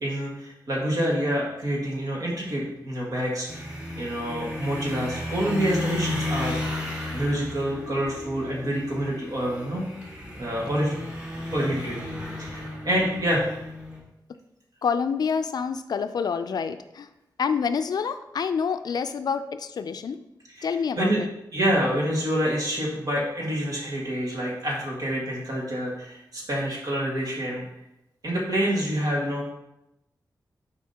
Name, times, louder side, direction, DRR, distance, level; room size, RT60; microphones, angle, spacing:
voice 1, 0.0-3.6 4.0-6.6 7.1-9.9 10.4-10.9 11.5-12.0 12.4-13.5 20.6-20.7 21.0-21.2 21.5-27.6 28.2-29.4, equal, 60° right, -3 dB, 1.8 m, -27 dB
sound 1, 3.5-14.0, left 1 dB, 15° right, 1.8 m, -34 dB
voice 2, 14.8-17.1 17.4-20.2 20.6-21.3, left 6 dB, 70° left, 10 dB, 0.4 m, -27 dB
7.1 x 4.8 x 2.9 m, 0.88 s
wide cardioid pair, 140°, 7 cm